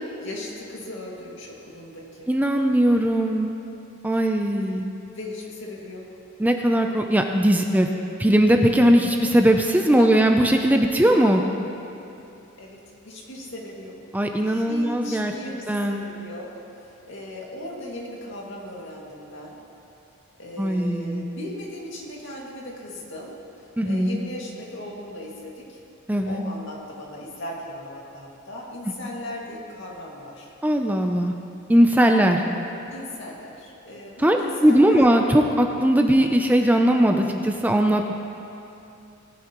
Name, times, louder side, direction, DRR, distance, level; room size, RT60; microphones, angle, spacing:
voice 1, 0.2-2.3 4.1-4.2 5.1-6.1 10.0-10.2 12.6-14.0 14.5-16.5 16.8-19.6 20.4-25.8 26.2-30.5 32.9-35.1, left 1 dB, 60° left, -3 dB, 2.2 m, -38 dB
voice 2, 2.3-3.5 4.0-4.8 6.4-7.9 8.2-11.4 14.1-15.3 15.7-16.0 20.6-21.2 23.8-24.2 26.1-26.5 30.6-31.3 31.7-32.4 34.2-38.1, right 1 dB, 10° right, 3 dB, 0.5 m, -19 dB
19.5 x 10.5 x 3.1 m, 2.7 s
head